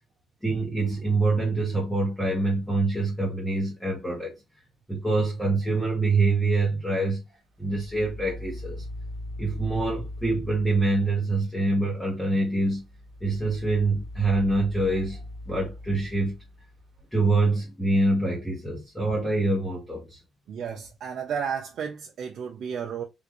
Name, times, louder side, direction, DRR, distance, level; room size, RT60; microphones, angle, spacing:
voice 1, 0.4-4.3 4.9-7.2 7.6-8.8 9.4-12.9 13.2-15.2 15.5-16.4 17.1-20.2, right 2 dB, 5° left, 1.0 m, -25 dB
sound 1, 7.6-11.3 12.6-17.0, left 1 dB, 75° right, 1.0 m, -40 dB
voice 2, 20.5-23.0, right 7 dB, 60° right, 0.6 m, -32 dB
3.7 x 2.5 x 3.0 m
cardioid pair, 165°, 0 cm